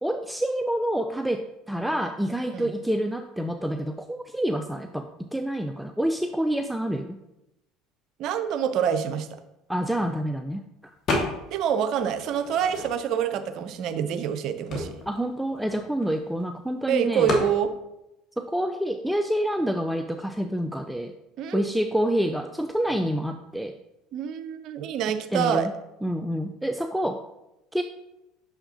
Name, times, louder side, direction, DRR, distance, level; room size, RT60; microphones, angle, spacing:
voice 1, 0.0-7.2 9.7-10.6 15.1-17.3 18.4-21.1 21.5-23.8 25.3-25.7 26.0-27.2 27.7-27.8, equal, ahead, 6 dB, 0.4 m, -27 dB
voice 2, 8.2-9.3 11.5-15.0 16.9-17.7 21.4-21.8 24.1-25.7, right 8 dB, 55° right, 10 dB, 0.5 m, -26 dB
sound 1, 11.1-11.7 12.0-13.2 13.9-14.0 14.2-16.4 17.3-17.6, left 2 dB, 45° left, 1.5 m, -29 dB
6.3 x 5.6 x 2.8 m, 0.91 s
hypercardioid pair, 65°, 0 cm